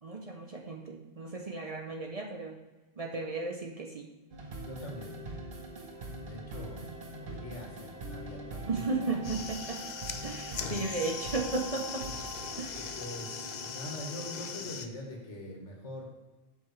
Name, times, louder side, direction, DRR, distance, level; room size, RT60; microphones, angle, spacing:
voice 1, 0.0-2.6 3.0-4.1 8.7-9.8 10.2-12.1 12.6-12.8, right 3 dB, 40° right, 1 dB, 0.6 m, -35 dB
sound 1, 4.3-14.7, right 2 dB, 55° right, 1.1 m, -43 dB
voice 2, 4.6-5.1 6.1-6.9 7.2-8.8 12.7-16.1, left 1 dB, 85° left, 0 dB, 1.7 m, -43 dB
sound 2, 9.1-14.9, left 7 dB, 60° left, 0.5 m, -40 dB
7.4 x 5.6 x 3.1 m, 1.2 s
omnidirectional pair, 1.2 m